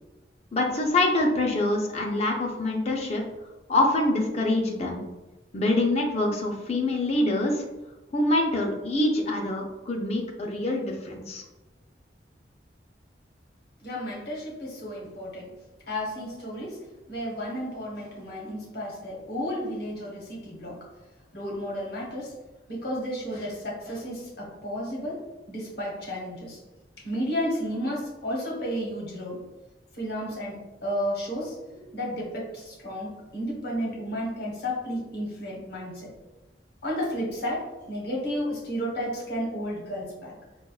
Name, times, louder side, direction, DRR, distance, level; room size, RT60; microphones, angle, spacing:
voice 1, 0.5-3.2 3.7-5.0 5.5-7.6 8.1-11.4, left 2 dB, 35° left, 0 dB, 0.5 m, -25 dB
voice 2, 13.8-15.5 15.9-16.8 17.1-20.8 21.3-22.3 22.7-25.2 25.5-26.6 27.0-29.4 29.9-36.1 36.8-40.3, equal, 55° left, -3 dB, 1.1 m, -32 dB
4.4 x 2.3 x 2.3 m, 1.1 s
head